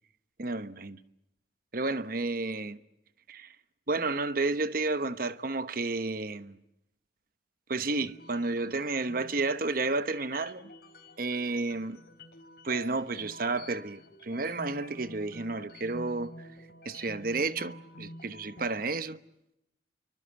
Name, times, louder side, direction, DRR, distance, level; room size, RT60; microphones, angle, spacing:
voice 1, 0.4-1.0 1.7-2.8 3.3-3.5 3.9-6.6 7.7-10.7 11.2-12.0 12.6-16.5 16.8-19.2, right 3 dB, 50° right, 1.1 m, -31 dB
sound 1, 8.0-18.8, left 1 dB, 55° left, 4.2 m, -49 dB
29.0 x 24.0 x 8.1 m
head